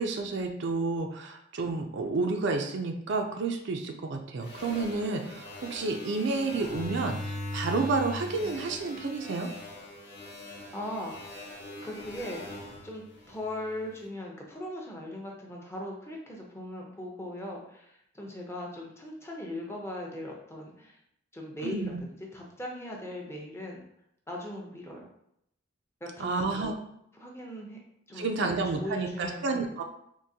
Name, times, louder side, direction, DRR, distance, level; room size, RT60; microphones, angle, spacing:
voice 1, 0.0-9.5 21.6-22.0 26.2-26.7 28.1-29.8, right 3 dB, 60° right, 4 dB, 0.4 m, -30 dB
sound 1, 4.4-13.9, left 1 dB, 55° left, 0.8 m, -40 dB
voice 2, 10.7-11.2 11.8-12.4 12.8-21.0 21.3-23.8 24.3-25.1 26.0-26.7 27.2-27.8 28.1-29.7, left 1 dB, 10° left, -1 dB, 0.6 m, -39 dB
3.7 x 2.5 x 2.7 m, 0.74 s
head